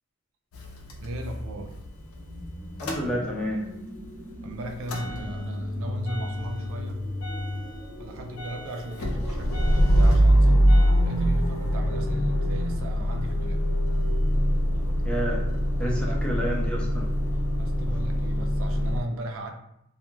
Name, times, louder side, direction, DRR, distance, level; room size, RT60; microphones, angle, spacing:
Motor vehicle (road) / Engine starting / Idling, 0.5-3.7 4.0-19.0, equal, 85° left, 0.5 m, -24 dB
voice 1, 1.0-1.7 4.4-7.0 8.0-10.7 11.0-13.7 15.8-16.2 17.6-19.5, right 1 dB, 65° right, 4 dB, 0.4 m, -37 dB
sound 1, 2.0-13.8, equal, 40° right, 0.8 m, -46 dB
voice 2, 2.8-3.7 15.0-15.4 15.8-17.1, equal, 5° left, -3 dB, 0.5 m, -29 dB
2.3 x 2.2 x 3.0 m, 0.80 s
head